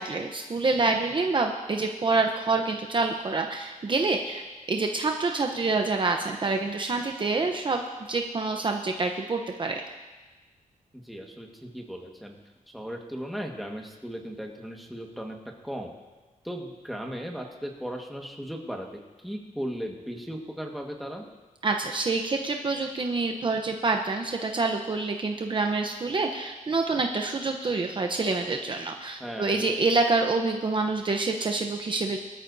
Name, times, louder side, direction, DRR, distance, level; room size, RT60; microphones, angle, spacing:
voice 1, 0.0-4.4 4.7-7.8 8.1-9.9 21.6-32.2, right 3 dB, 35° right, 3 dB, 0.8 m, -27 dB
voice 2, 10.9-12.4 12.7-15.4 15.6-15.9 16.4-18.9 19.2-21.2 29.2-29.7, equal, ahead, 0 dB, 1.6 m, -36 dB
22.5 x 13.0 x 2.7 m, 1.2 s
wide cardioid pair, 130°, 14 cm